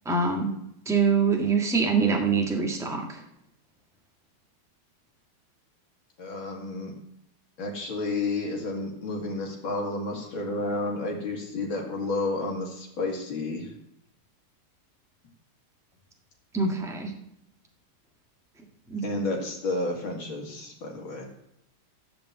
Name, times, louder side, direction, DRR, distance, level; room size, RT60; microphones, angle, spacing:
voice 1, 0.0-0.5 0.8-3.2 16.5-17.1 18.9-19.0, right 5 dB, ahead, 2 dB, 1.2 m, -24 dB
voice 2, 6.2-6.9 7.6-13.7 19.0-21.3, left 2 dB, 65° left, 0 dB, 2.9 m, -31 dB
13.0 x 5.2 x 8.1 m, 0.76 s
omnidirectional pair, 2.4 m